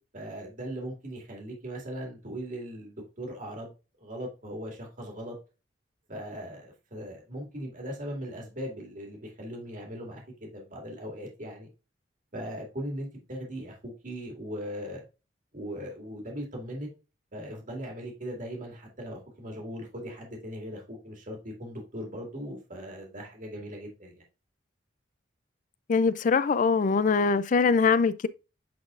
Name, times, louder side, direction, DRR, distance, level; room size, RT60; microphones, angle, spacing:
voice 1, 0.1-3.7 4.0-5.3 6.1-11.7 12.3-15.0 15.5-16.9 17.3-24.2, equal, 45° right, 2.1 m, -39 dB
voice 2, 25.9-28.3, left 5 dB, 45° left, 0.4 m, -23 dB
9.4 x 4.1 x 2.5 m
head